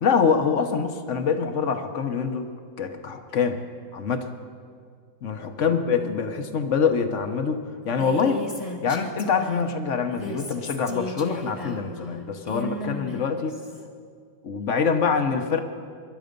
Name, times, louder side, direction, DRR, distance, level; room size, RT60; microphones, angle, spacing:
voice 1, 0.0-2.5 2.8-3.6 3.9-4.3 5.2-8.4 8.8-13.6 14.4-15.6, left 6 dB, 50° left, 7 dB, 1.0 m, -25 dB
Female speech woman speaking, 7.8-9.7 10.1-13.8, left 1 dB, 20° left, 1.2 m, -36 dB
23.0 x 11.5 x 5.3 m, 2.1 s
omnidirectional pair, 2.1 m